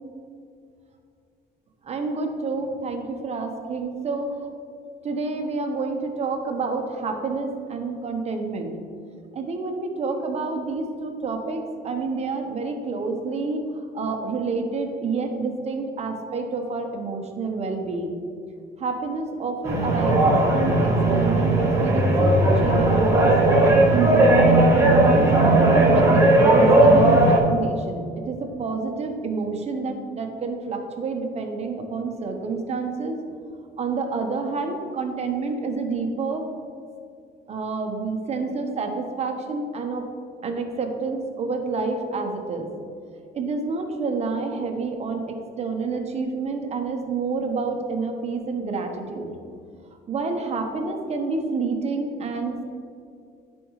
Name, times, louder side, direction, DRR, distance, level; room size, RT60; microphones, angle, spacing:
voice 1, 1.8-4.3 5.0-8.7 9.3-18.2 18.8-23.3 23.9-25.3 25.8-33.2 33.8-36.4 37.5-40.1 40.4-42.7 43.3-49.3 50.1-52.6, right 4 dB, 40° right, 3 dB, 1.1 m, -28 dB
sound 1, 19.6-27.4, right 2 dB, 15° right, 1.7 m, -17 dB
10.5 x 5.3 x 3.2 m, 2.4 s
cardioid pair, 110°, 17 cm